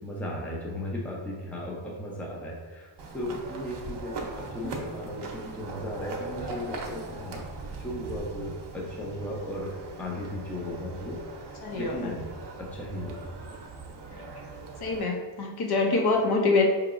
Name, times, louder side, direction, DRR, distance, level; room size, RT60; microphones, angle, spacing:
voice 1, 0.0-7.4 7.8-12.3 12.6-13.3, left 1 dB, 5° left, -2 dB, 0.5 m, -36 dB
sound 1, 3.0-15.0, right 3 dB, 55° right, 0.7 m, -40 dB
voice 2, 11.6-12.1 14.1-14.2 14.8-16.7, left 3 dB, 50° left, 1 dB, 0.6 m, -25 dB
4.7 x 2.9 x 2.4 m, 1.4 s
cardioid pair, 115°, 48 cm